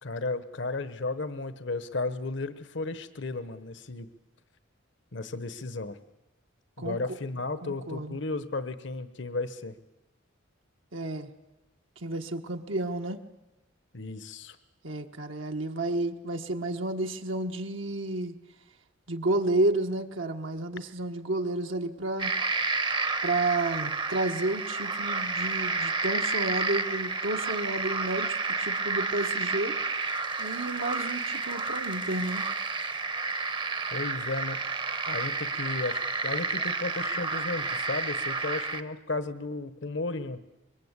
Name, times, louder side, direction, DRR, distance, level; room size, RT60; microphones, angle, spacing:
voice 1, 0.0-4.1 5.1-6.0 6.8-9.7 13.9-14.6 33.9-34.6 35.1-40.4, left 3 dB, 65° left, 13 dB, 1.1 m, -34 dB
voice 2, 7.6-8.2 10.9-11.3 12.0-13.2 14.8-18.3 19.1-22.3 23.2-29.7 30.4-32.5, right 2 dB, 75° right, 4 dB, 1.4 m, -31 dB
sound 1, 22.2-38.8, right 3 dB, 25° right, 0.9 m, -30 dB
25.5 x 22.5 x 8.2 m, 1.0 s
head